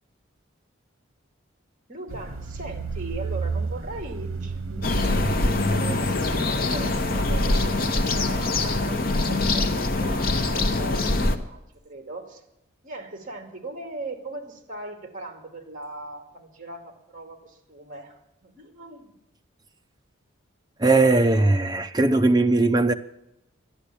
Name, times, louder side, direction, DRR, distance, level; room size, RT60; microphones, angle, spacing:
voice 1, 1.9-5.2 5.7-12.4 12.8-18.1 18.4-19.1, right 2 dB, 40° right, 2.3 m, -39 dB
sound 1, 2.1-7.7, right 3 dB, 85° right, 0.8 m, -32 dB
sound 2, 4.8-11.4, left 2 dB, 45° left, 0.9 m, -24 dB
voice 2, 20.8-22.9, right 2 dB, 20° right, 0.6 m, -19 dB
12.0 x 11.5 x 8.5 m
head